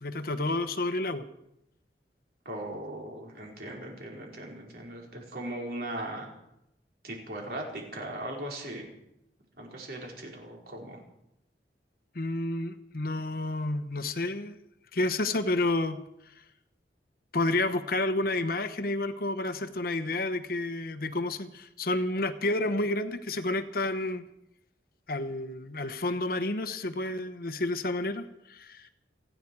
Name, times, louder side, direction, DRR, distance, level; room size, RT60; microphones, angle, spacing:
voice 1, 0.0-1.2 12.1-14.6 14.9-16.0 17.3-24.2 25.1-28.9, left 2 dB, 55° left, 10 dB, 1.0 m, -30 dB
voice 2, 2.4-6.3 7.0-8.9 9.6-11.0, right 1 dB, 60° right, -1 dB, 4.9 m, -38 dB
29.5 x 10.5 x 4.7 m, 0.82 s
head